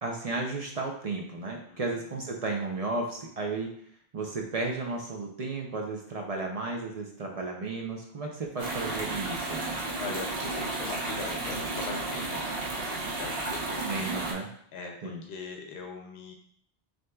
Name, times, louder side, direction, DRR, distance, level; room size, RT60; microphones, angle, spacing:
voice 1, 0.0-3.7 4.1-9.6 13.8-14.5 15.0-15.2, right 3 dB, 50° right, 1 dB, 0.5 m, -33 dB
voice 2, 1.7-2.1 10.0-13.8 14.7-16.3, left 4 dB, 80° left, 2 dB, 0.8 m, -41 dB
sound 1, 8.6-14.3, right 2 dB, 65° right, 1.0 m, -33 dB
6.3 x 2.7 x 2.2 m, 0.66 s
omnidirectional pair, 1.1 m